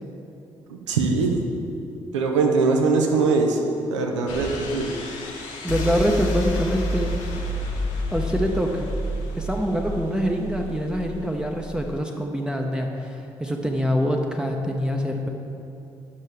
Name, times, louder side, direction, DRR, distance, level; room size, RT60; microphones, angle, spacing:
voice 1, 0.7-1.4 2.1-3.6 3.9-4.9, right 4 dB, 80° right, 2 dB, 0.6 m, -21 dB
sound 1, 4.3-12.0, left 1 dB, 55° left, 1.1 m, -30 dB
voice 2, 5.6-7.1 8.1-8.9 9.4-15.3, equal, 5° right, 1 dB, 0.7 m, -25 dB
9.6 x 6.3 x 3.4 m, 2.8 s
figure-of-eight pair, 40°, 15 cm